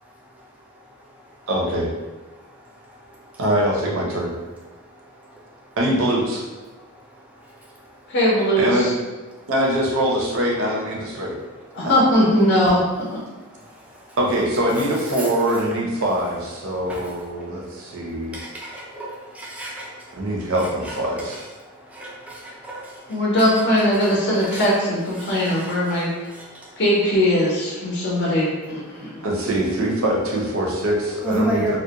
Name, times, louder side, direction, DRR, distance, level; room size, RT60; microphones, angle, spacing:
voice 1, 1.5-1.9 3.4-4.3 5.8-6.4 8.6-8.9 9.5-11.4 14.2-18.3 20.2-21.4 29.2-31.8, right 1 dB, 60° right, -2 dB, 0.5 m, -23 dB
voice 2, 2.3-3.4 4.7-5.8 6.7-8.1 9.3-9.5 13.3-14.2 15.2-15.3 16.9-20.4 20.8-21.2 21.7-24.1 24.4-24.7 25.2-26.8 27.9-28.2 28.8-29.3 31.2-31.8, equal, 5° right, -4 dB, 0.3 m, -35 dB
voice 3, 8.1-8.9 11.7-13.1 23.1-26.1 26.8-29.2, equal, 50° left, -5 dB, 0.5 m, -20 dB
2.3 x 2.0 x 2.8 m, 1.2 s
head